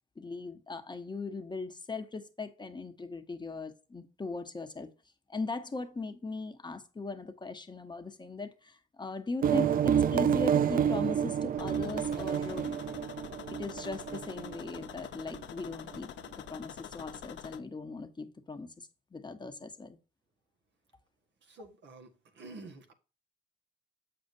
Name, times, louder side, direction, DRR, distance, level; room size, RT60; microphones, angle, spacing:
voice 1, 0.2-4.9 5.3-12.8 13.5-20.0, left 3 dB, 20° left, 1.0 m, -39 dB
sound 1, 9.4-14.8, right 8 dB, 45° right, 0.4 m, -29 dB
sound 2, 11.6-17.6, left 9 dB, 65° left, 0.9 m, -46 dB
voice 2, 21.4-22.9, right 2 dB, 65° right, 1.7 m, -49 dB
7.8 x 6.5 x 2.7 m
cardioid pair, 90°, 20 cm